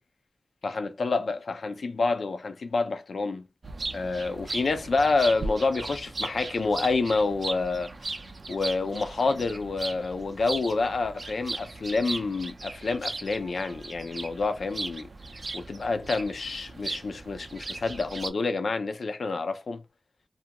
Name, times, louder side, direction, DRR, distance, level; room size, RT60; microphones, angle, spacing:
voice 1, 0.6-3.5 3.9-7.9 8.5-15.1 15.5-19.8, left 3 dB, 70° left, 0.4 m, -28 dB
sound 1, 3.6-18.3, right 3 dB, 45° right, 0.4 m, -37 dB
2.4 x 2.2 x 2.8 m
wide cardioid pair, 95°, 0 cm